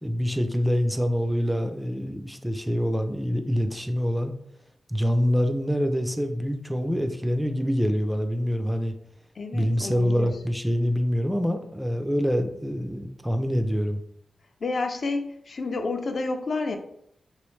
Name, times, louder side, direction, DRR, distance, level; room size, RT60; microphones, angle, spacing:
voice 1, 0.0-4.3 4.9-8.9 9.5-14.0, equal, 5° right, 7 dB, 0.4 m, -25 dB
voice 2, 9.4-10.3 14.6-16.8, left 3 dB, 60° left, 5 dB, 0.4 m, -30 dB
3.1 x 3.1 x 3.1 m, 0.73 s
cardioid pair, 75°, 0 cm